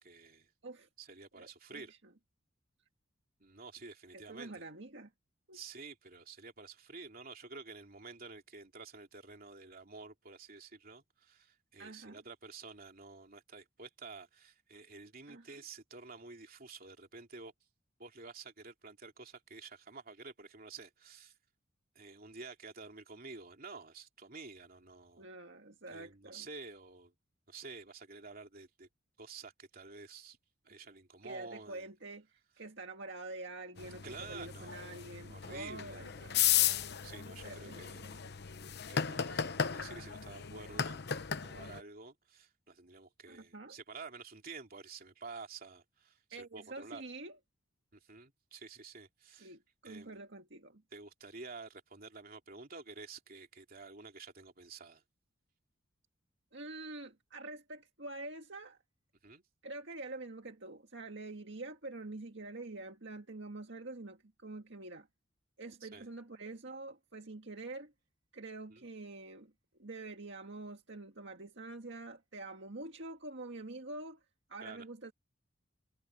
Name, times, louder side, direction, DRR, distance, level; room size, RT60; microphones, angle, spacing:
voice 1, 0.0-0.5 1.0-1.9 3.4-4.6 5.5-17.5 18.0-21.3 21.9-25.3 25.9-27.1 27.5-28.9 29.2-30.4 30.7-31.8 34.0-34.8 35.3-36.0 37.0-38.1 38.9-47.0 47.9-49.5 49.8-50.2 50.9-55.0 59.2-59.4 65.8-66.1 68.7-68.8 74.6-74.8, right 4 dB, 50° right, 3.0 m, -50 dB
voice 2, 1.3-2.1 4.1-5.1 5.5-5.6 11.8-12.2 15.3-15.6 25.2-26.5 31.2-36.4 37.4-38.2 43.3-43.8 46.3-47.4 49.4-50.8 56.5-58.8 59.6-65.1 65.6-67.9 68.3-69.5 69.8-74.2 74.5-75.1, right 2 dB, 65° right, 2.0 m, -46 dB
sound 1, 33.8-41.8, left 9 dB, 55° left, 1.0 m, -35 dB
head